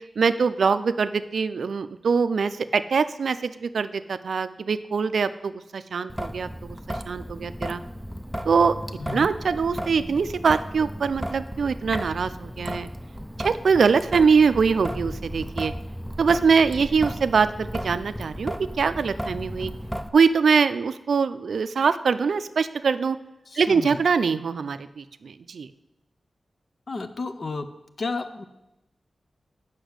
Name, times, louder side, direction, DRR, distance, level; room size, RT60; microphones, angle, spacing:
voice 1, 0.2-7.8 8.5-8.7 9.1-12.9 13.4-15.7 16.2-19.7 20.1-23.2 23.6-25.7, right 5 dB, 75° right, 12 dB, 0.4 m, -23 dB
Traffic noise roadway noise / Drip / Trickle dribble, 6.1-20.1, equal, ahead, 0.4 m, -34 dB
voice 2, 9.0-9.3 23.5-24.0 26.9-27.7 28.0-28.4, left 3 dB, 45° left, 10 dB, 0.6 m, -32 dB
8.0 x 5.7 x 6.4 m, 0.95 s
wide cardioid pair, 150°, 0 cm